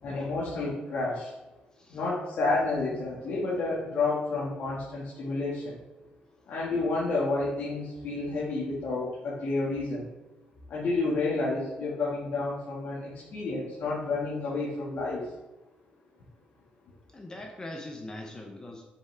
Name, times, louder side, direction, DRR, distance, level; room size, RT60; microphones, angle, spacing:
voice 1, 0.0-1.3 1.9-5.8 6.5-10.1 10.7-15.2, left 3 dB, 70° left, -8 dB, 2.2 m, -30 dB
voice 2, 17.1-18.8, left 1 dB, 20° left, 2 dB, 1.0 m, -42 dB
8.1 x 7.2 x 3.6 m, 1.1 s
cardioid pair, 120°, 3 cm